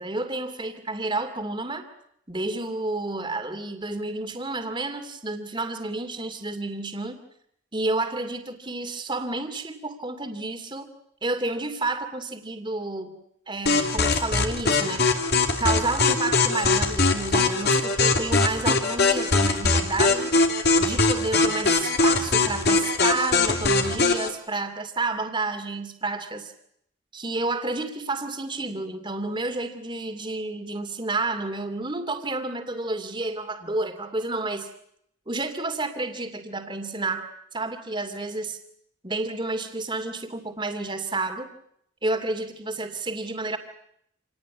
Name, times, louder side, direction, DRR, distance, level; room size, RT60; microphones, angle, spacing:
voice 1, 0.0-1.9 2.3-7.2 7.7-10.9 11.2-13.2 13.5-15.1 15.6-20.3 20.8-26.5 27.1-34.7 35.3-37.3 37.5-38.6 39.0-41.5 42.0-43.6, right 2 dB, 25° right, 7 dB, 2.6 m, -30 dB
sound 1, 13.7-24.3, left 3 dB, 55° left, 3.0 m, -21 dB
27.5 x 19.0 x 9.4 m, 0.73 s
head